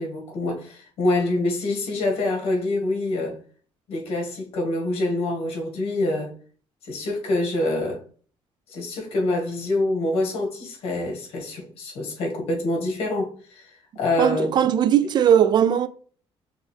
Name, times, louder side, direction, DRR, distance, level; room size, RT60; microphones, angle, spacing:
voice 1, 0.0-3.4 3.9-6.3 6.8-8.0 8.7-14.5, left 2 dB, 75° left, 1.6 m, -26 dB
voice 2, 14.2-15.9, right 9 dB, 45° right, 0.3 m, -19 dB
6.2 x 2.5 x 3.3 m
cardioid pair, 150°, 10 cm